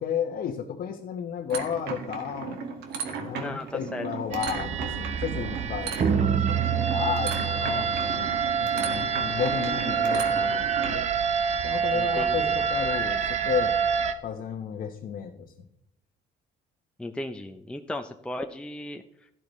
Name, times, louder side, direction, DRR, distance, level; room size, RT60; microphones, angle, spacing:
voice 1, 0.0-2.6 3.2-8.3 8.6-11.1 11.6-13.8 14.2-15.7, left 8 dB, 55° left, 2 dB, 1.1 m, -33 dB
sound 1, 1.5-11.0, right 5 dB, 75° right, 2.1 m, -36 dB
voice 2, 3.4-4.1 11.9-12.5 17.0-19.3, left 1 dB, 5° left, 5 dB, 0.6 m, -36 dB
sound 2, 4.3-14.1, right 7 dB, 40° right, 1.0 m, -26 dB
12.0 x 12.0 x 3.2 m, 0.79 s
cardioid pair, 110°, 17 cm